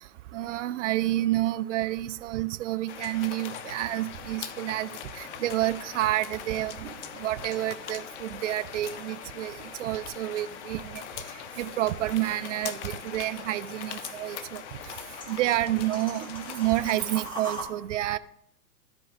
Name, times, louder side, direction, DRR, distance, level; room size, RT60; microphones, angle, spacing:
voice 1, 0.3-4.9 5.2-6.9 7.2-9.5 9.8-11.0 11.6-14.6 15.3-18.2, right 15 dB, 55° right, 0.6 m, -29 dB
sound 1, 2.8-17.6, right 2 dB, 10° left, 1.9 m, -47 dB
sound 2, 2.9-17.3, left 9 dB, 50° left, 0.7 m, -41 dB
13.0 x 4.6 x 4.1 m
hypercardioid pair, 115°, 46 cm